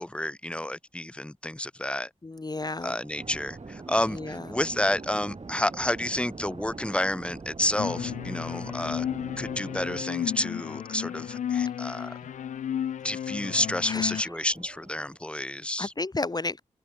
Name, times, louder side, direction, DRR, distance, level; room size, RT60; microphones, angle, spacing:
voice 1, 0.0-2.1 2.8-9.0 9.4-12.3 13.0-15.9, left 1 dB, 10° left, 1.4 m, -30 dB
voice 2, 2.2-2.9 4.1-4.4 13.8-14.2 15.8-16.6, left 2 dB, 35° left, 1.2 m, -32 dB
sound 1, 2.6-15.2, right 5 dB, 75° right, 7.8 m, -58 dB
sound 2, 3.2-10.0, right 3 dB, 45° right, 2.5 m, -42 dB
sound 3, 7.8-14.2, left 9 dB, 90° left, 0.4 m, -33 dB
cardioid pair, 50°, 12 cm